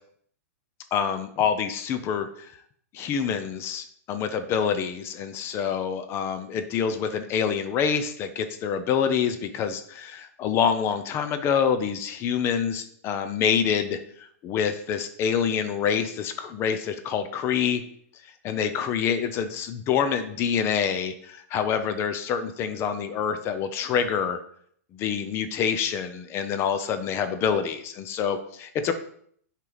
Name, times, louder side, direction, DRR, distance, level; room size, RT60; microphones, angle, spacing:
voice 1, 0.9-2.5 2.9-17.8 18.4-24.4 25.0-28.9, left 7 dB, 30° left, 9 dB, 0.6 m, -26 dB
7.8 x 4.5 x 4.0 m, 0.62 s
hypercardioid pair, 135°, 8 cm